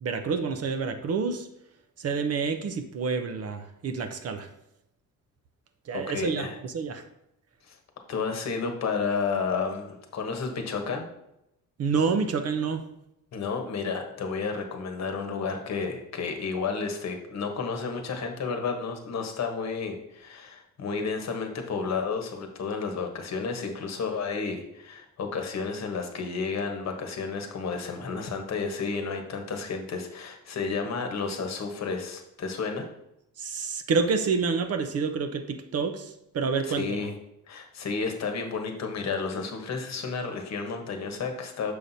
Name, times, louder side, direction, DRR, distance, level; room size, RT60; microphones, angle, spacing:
voice 1, 0.0-1.5 2.0-4.5 5.9-7.0 11.8-12.9 33.4-37.0, right 5 dB, 45° right, 8 dB, 0.6 m, -28 dB
voice 2, 5.9-6.6 7.7-7.8 8.1-11.0 13.3-32.9 36.6-37.2 37.5-41.7, left 5 dB, 50° left, 4 dB, 1.1 m, -31 dB
6.5 x 5.7 x 2.7 m, 0.82 s
cardioid pair, 125°, 34 cm